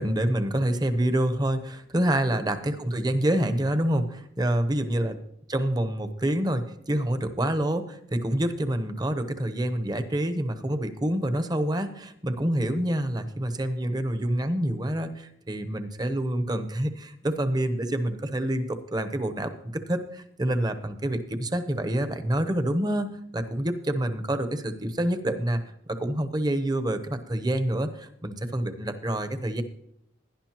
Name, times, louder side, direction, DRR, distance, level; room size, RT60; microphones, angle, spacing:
voice 1, 0.0-5.2 5.5-25.6 25.9-29.6, right 1 dB, 20° right, 9 dB, 0.9 m, -27 dB
17.0 x 11.0 x 3.0 m, 0.72 s
head